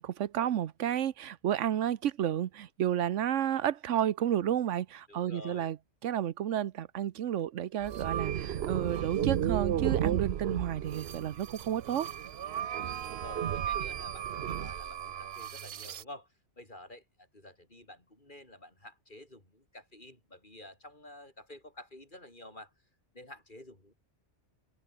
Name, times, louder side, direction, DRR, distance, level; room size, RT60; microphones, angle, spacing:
voice 1, 0.0-5.8 6.0-12.1, right 10 dB, 85° right, 1.1 m, -31 dB
voice 2, 5.1-5.7 13.2-16.3 16.6-22.7 23.1-23.9, left 1 dB, 40° left, 5.7 m, -50 dB
sound 1, 7.8-16.0, right 10 dB, 60° right, 0.9 m, -33 dB
omnidirectional pair, 1.2 m